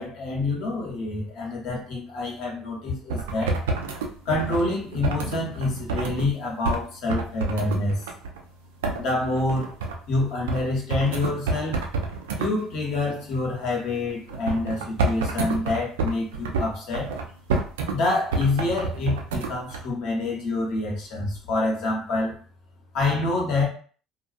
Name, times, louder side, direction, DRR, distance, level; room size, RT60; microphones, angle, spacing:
voice 1, 0.0-3.6 4.2-8.1 9.0-9.7 10.1-11.8 12.4-17.1 17.9-22.4 22.9-23.6, left 2 dB, 65° left, -2 dB, 1.0 m, -27 dB
sound 1, 3.1-6.3 6.6-6.8 7.1-8.4 8.8-10.0 10.5-10.6 10.9-12.5 14.3-18.0 18.3-19.8, right 3 dB, 85° right, 0.4 m, -28 dB
2.3 x 2.3 x 2.5 m, 0.42 s
hypercardioid pair, 65°, 0 cm